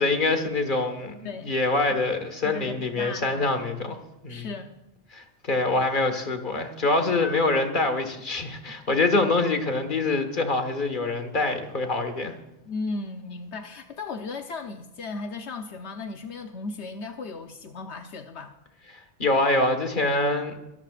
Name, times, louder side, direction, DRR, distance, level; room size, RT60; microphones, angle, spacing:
voice 1, 0.0-4.0 4.2-4.5 5.1-12.3 18.9-20.6, left 2 dB, 45° left, 6 dB, 1.7 m, -25 dB
voice 2, 2.4-3.5 4.3-4.7 7.2-7.4 12.7-18.6, left 3 dB, 80° left, 5 dB, 1.2 m, -36 dB
25.0 x 13.0 x 2.5 m, 0.91 s
omnidirectional pair, 1.1 m